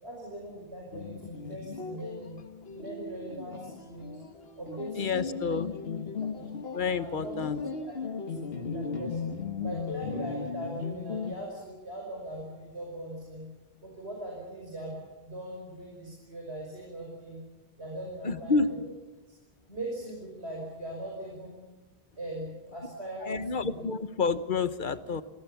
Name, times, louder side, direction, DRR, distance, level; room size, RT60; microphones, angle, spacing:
voice 1, 0.0-2.4 2.7-4.2 4.6-5.6 6.2-6.6 7.0-7.4 8.3-9.2 9.6-13.5 13.8-17.4 17.8-18.8 19.7-21.6 22.2-23.9, right 1 dB, 85° right, -1 dB, 5.9 m, -40 dB
sound 1, 0.9-11.3, left 5 dB, 70° left, 1.7 m, -37 dB
voice 2, 4.9-5.7 6.7-7.6 18.2-18.7 23.2-25.2, left 4 dB, 50° left, 13 dB, 1.2 m, -29 dB
30.0 x 22.0 x 7.1 m, 1.1 s
omnidirectional pair, 1.1 m